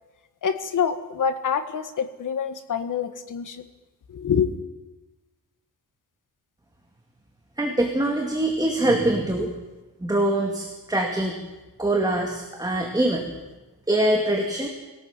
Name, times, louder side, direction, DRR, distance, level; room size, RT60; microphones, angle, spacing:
voice 1, 0.4-3.6 4.1-4.5, left 7 dB, 60° left, 9 dB, 1.7 m, -26 dB
voice 2, 7.6-9.5 10.0-11.4 11.8-13.2 13.9-14.7, right 1 dB, 10° right, 1 dB, 2.5 m, -23 dB
23.0 x 17.5 x 7.4 m, 1.1 s
wide cardioid pair, 150°, 35 cm